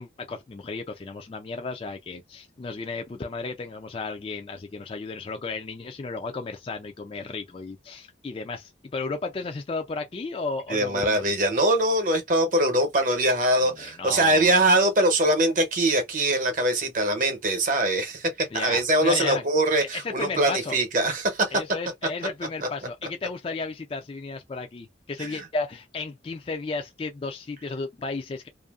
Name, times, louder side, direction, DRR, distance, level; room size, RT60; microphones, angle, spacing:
voice 1, 0.0-11.2 13.6-14.6 18.5-19.5 19.8-20.8 21.5-28.5, left 3 dB, 30° left, 0.3 m, -34 dB
voice 2, 10.7-21.5 25.2-25.5, right 1 dB, 45° right, 0.8 m, -22 dB
2.6 x 2.5 x 2.3 m
head